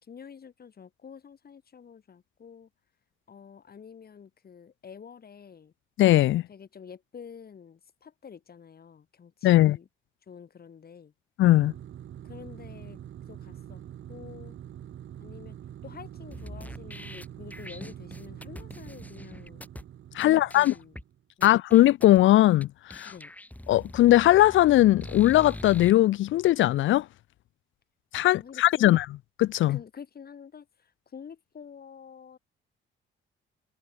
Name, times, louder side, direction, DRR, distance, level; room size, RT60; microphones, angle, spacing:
voice 1, 0.0-2.7 3.3-5.7 6.5-9.9 10.3-11.1 12.2-13.0 13.3-13.8 14.1-14.6 15.2-19.7 20.2-21.0 21.4-21.6 23.0-23.3 28.3-28.9 29.7-32.4, left 7 dB, 50° left, 4.9 m, -47 dB
voice 2, 6.0-6.4 9.4-9.8 11.4-11.7 20.1-20.7 21.4-23.1 23.7-27.1 28.1-29.0 29.4-29.8, left 15 dB, 65° left, 0.5 m, -20 dB
sound 1, 11.4-21.2, right 10 dB, 65° right, 4.7 m, -45 dB
sound 2, 16.3-19.8 20.2-20.3 20.5-21.0 21.4-22.2 22.6-22.7 22.9-25.9, left 1 dB, 5° left, 7.3 m, -43 dB
cardioid pair, 80°, 21 cm